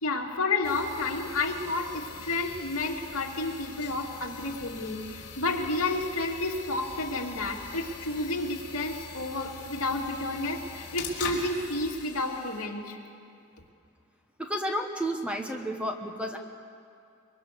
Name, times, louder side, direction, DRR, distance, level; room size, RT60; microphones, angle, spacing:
voice 1, 0.0-13.0, left 2 dB, 65° left, 0 dB, 2.7 m, -31 dB
sound 1, 0.6-12.7, left 5 dB, 50° left, 3.6 m, -42 dB
voice 2, 14.4-16.4, equal, 5° right, 4 dB, 1.2 m, -31 dB
24.0 x 23.0 x 6.9 m, 2.5 s
head